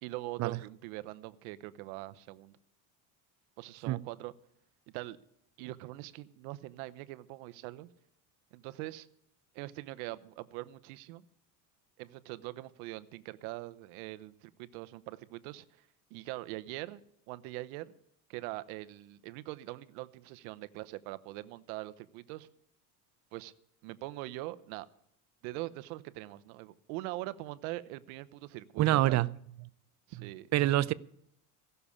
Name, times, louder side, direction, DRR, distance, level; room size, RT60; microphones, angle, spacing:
voice 1, 0.0-2.6 3.6-4.3 4.9-5.2 5.6-7.9 8.5-9.1 9.5-11.2 12.0-17.0 17.3-17.9 18.3-22.5 23.3-23.5 23.8-24.9 25.4-29.2 30.1-30.5, right 18 dB, 75° right, 1.0 m, -42 dB
voice 2, 28.8-29.3 30.5-30.9, right 15 dB, 40° right, 0.5 m, -26 dB
16.0 x 6.9 x 8.5 m
supercardioid pair, 115°, 42 cm